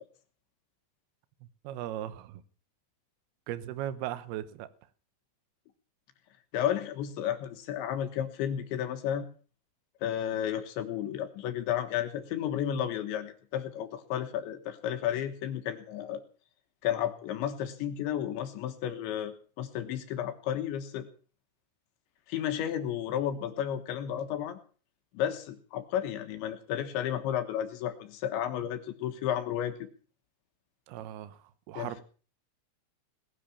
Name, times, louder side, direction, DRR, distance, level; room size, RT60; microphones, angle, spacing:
voice 1, 1.4-2.4 3.5-4.7 30.9-32.0, right 12 dB, 85° right, 2.2 m, -38 dB
voice 2, 6.5-9.3 10.0-16.2 16.8-21.1 22.3-24.6 25.1-29.9 31.8-32.0, left 10 dB, 70° left, 3.3 m, -32 dB
19.0 x 10.0 x 7.1 m
omnidirectional pair, 5.9 m